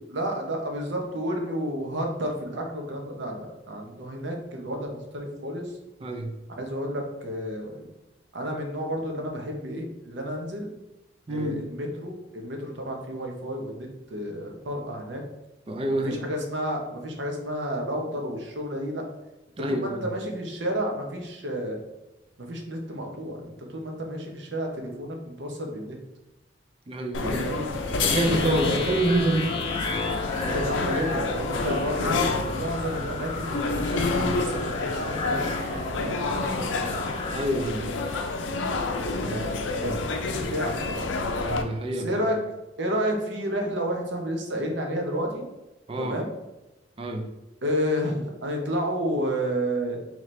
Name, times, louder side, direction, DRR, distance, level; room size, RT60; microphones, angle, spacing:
voice 1, 0.1-5.8 6.5-7.9 8.3-10.8 11.3-15.2 16.0-19.0 19.7-21.8 22.4-26.0 27.2-29.0 30.4-36.9 37.4-37.6 39.3-39.9 40.2-41.2 41.9-42.4 42.8-45.4 46.0-46.3 47.6-50.1, equal, 70° right, 2 dB, 0.8 m, -31 dB
voice 2, 6.0-6.3 11.3-11.6 15.7-16.2 19.6-20.1 26.9-27.5 28.0-29.5 31.6-31.8 36.0-36.1 37.3-37.8 39.2-39.4 39.8-40.0 41.4-42.2 45.9-46.1 47.0-47.2, right 1 dB, 30° right, 5 dB, 0.5 m, -27 dB
sound 1, 27.1-41.6, left 3 dB, 85° left, 0.5 m, -29 dB
sound 2, 28.0-37.5, left 3 dB, 25° left, 0.4 m, -34 dB
4.2 x 3.0 x 3.1 m, 0.98 s
head